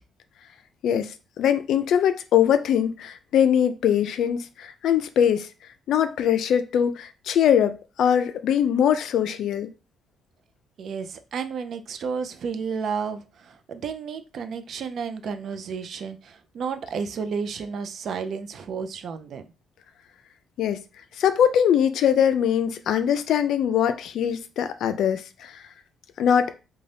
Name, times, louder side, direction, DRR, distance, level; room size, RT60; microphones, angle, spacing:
voice 1, 0.8-5.5 5.9-9.7 20.6-20.8 21.2-25.5 26.2-26.5, left 9 dB, 75° left, 0.3 m, -22 dB
voice 2, 10.8-19.5, right 6 dB, 65° right, 0.4 m, -32 dB
2.6 x 2.2 x 3.3 m
cardioid pair, 90°, 0 cm